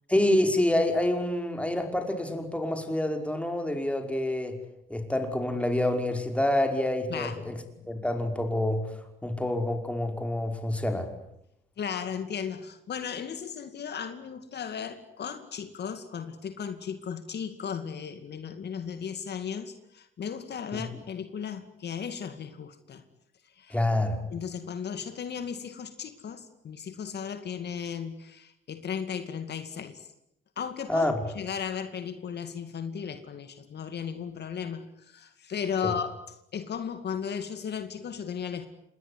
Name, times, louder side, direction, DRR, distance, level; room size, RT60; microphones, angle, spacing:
voice 1, 0.1-4.6 4.9-7.6 7.9-8.8 9.2-11.1 20.7-20.8 23.7-24.2 30.9-31.2 35.8-35.9, left 1 dB, 5° left, 5 dB, 5.5 m, -27 dB
voice 2, 7.1-8.0 11.8-23.0 23.6-23.8 24.3-30.1 30.6-36.1 36.5-38.7, left 7 dB, 55° left, 9 dB, 2.3 m, -36 dB
27.5 x 21.0 x 9.8 m, 0.80 s
cardioid pair, 90°, 20 cm